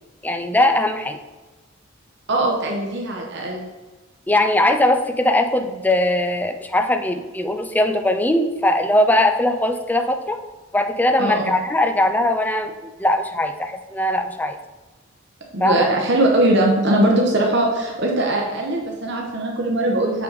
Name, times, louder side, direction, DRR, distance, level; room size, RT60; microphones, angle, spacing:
voice 1, 0.2-1.2 4.3-10.4 10.7-14.6 15.6-15.9, left 1 dB, 10° left, 7 dB, 0.4 m, -20 dB
voice 2, 2.3-3.6 11.2-11.6 15.5-20.2, right 1 dB, 60° right, 0 dB, 1.0 m, -20 dB
6.5 x 5.7 x 4.0 m, 1.2 s
head